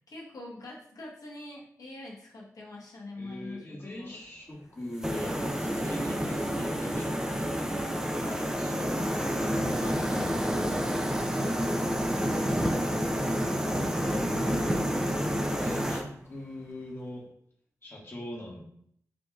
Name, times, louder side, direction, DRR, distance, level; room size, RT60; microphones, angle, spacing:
voice 1, 0.0-4.2 8.1-10.6, left 2 dB, 75° left, -4 dB, 1.2 m, -44 dB
voice 2, 3.1-7.9 9.8-10.8 12.5-13.5 14.0-17.2 17.8-18.7, left 1 dB, 45° left, -4 dB, 1.6 m, -42 dB
sound 1, 5.0-16.0, equal, 10° right, 0.6 m, -29 dB
5.0 x 2.8 x 2.4 m, 0.67 s
cardioid pair, 50°, 6 cm